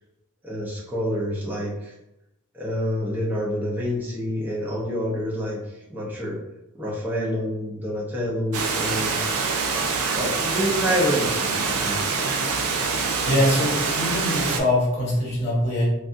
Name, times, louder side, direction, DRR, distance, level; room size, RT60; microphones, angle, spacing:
voice 1, 0.4-1.9 2.5-6.4 6.7-9.2 10.1-12.0, equal, 10° right, -6 dB, 0.7 m, -27 dB
Water, 8.5-14.6, right 4 dB, 85° right, 0.5 m, -25 dB
voice 2, 13.2-15.8, left 1 dB, 30° left, -6 dB, 1.1 m, -23 dB
3.3 x 2.4 x 2.6 m, 0.90 s
head